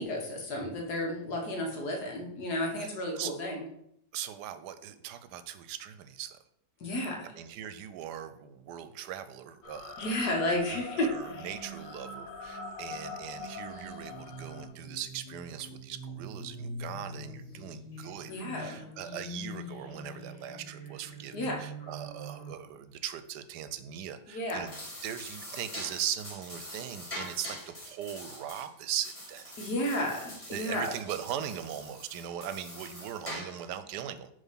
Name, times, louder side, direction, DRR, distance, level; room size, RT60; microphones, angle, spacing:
voice 1, 0.0-3.6 6.8-7.3 10.0-11.5 18.3-18.9 21.3-21.6 24.3-24.7 29.6-30.9, left 1 dB, 65° left, 0 dB, 1.9 m, -32 dB
voice 2, 2.8-3.3 4.1-6.4 7.3-10.2 10.7-18.3 18.6-24.7 25.0-29.5 30.5-34.3, right 10 dB, 75° right, 11 dB, 1.2 m, -40 dB
sound 1, 9.6-14.7, left 5 dB, 90° left, 1.4 m, -43 dB
sound 2, 11.2-22.5, right 1 dB, 35° left, 2.6 m, -45 dB
sound 3, 24.5-33.7, equal, 20° left, 2.2 m, -44 dB
7.2 x 3.5 x 5.7 m, 0.74 s
omnidirectional pair, 1.9 m